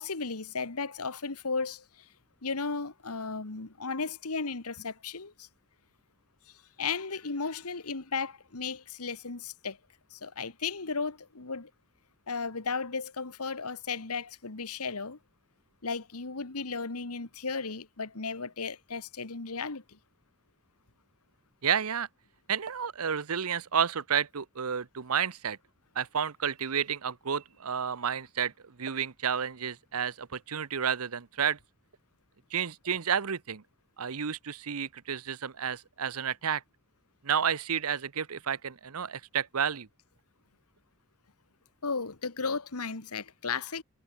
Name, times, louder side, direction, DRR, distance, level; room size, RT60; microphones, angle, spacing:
voice 1, 0.0-2.1 2.4-5.5 6.8-9.8 10.1-11.7 12.3-15.2 15.8-20.0 41.8-43.8, left 4 dB, 85° left, 1.6 m, -35 dB
voice 2, 21.6-22.1 22.5-25.6 25.9-31.6 32.5-33.6 34.0-36.6 37.2-39.9, right 7 dB, 80° right, 0.9 m, -31 dB
head